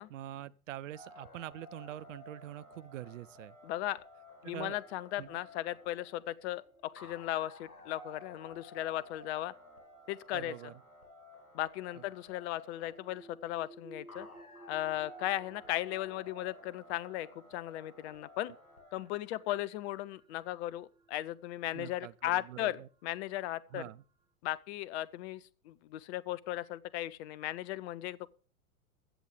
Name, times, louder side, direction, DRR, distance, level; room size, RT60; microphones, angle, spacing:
voice 1, 0.1-3.6 4.4-4.8 5.2-5.4 10.3-10.7 21.7-22.9 23.7-24.0, right 13 dB, 60° right, 0.7 m, -44 dB
sound 1, 0.9-19.0, left 1 dB, 90° left, 5.0 m, -55 dB
voice 2, 3.6-4.0 4.4-9.5 10.1-10.5 11.5-14.3 14.7-18.5 18.9-23.8 24.4-28.3, left 14 dB, 50° left, 0.8 m, -37 dB
Space drops, 4.7-10.7 11.9-24.3, right 3 dB, 10° right, 1.7 m, -61 dB
15.0 x 8.1 x 5.1 m
figure-of-eight pair, 90°, 43 cm